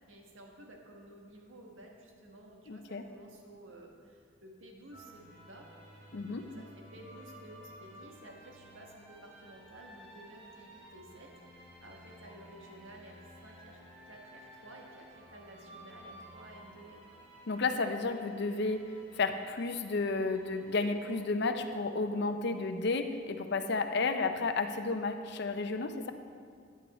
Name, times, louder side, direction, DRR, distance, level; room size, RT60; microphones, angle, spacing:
voice 1, 0.1-5.7 6.3-13.8 14.1-17.2, right 1 dB, 80° right, 0 dB, 1.5 m, -53 dB
voice 2, 2.7-3.0 6.1-6.5 17.5-26.1, left 3 dB, 60° left, 8 dB, 0.6 m, -32 dB
sound 1, 4.9-21.3, equal, 30° right, 2.2 m, -54 dB
9.6 x 8.5 x 4.2 m, 2.2 s
head